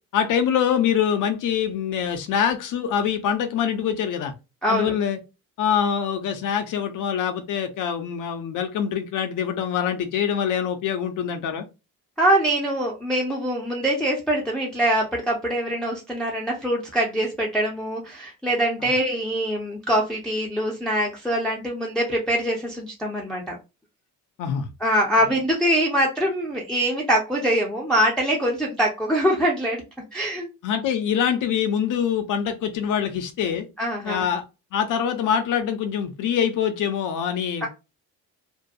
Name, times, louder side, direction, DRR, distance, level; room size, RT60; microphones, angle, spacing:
voice 1, 0.1-4.3 4.7-5.2 5.6-11.6 18.8-18.9 24.4-24.7 30.6-33.7 34.0-34.4 34.7-37.7, left 8 dB, 40° left, 0.6 m, -24 dB
voice 2, 4.6-4.9 12.2-23.5 24.8-29.8 30.1-30.5 33.8-34.3 37.6-37.7, right 1 dB, ahead, 0.6 m, -23 dB
2.6 x 2.2 x 2.7 m
figure-of-eight pair, 50°, 48 cm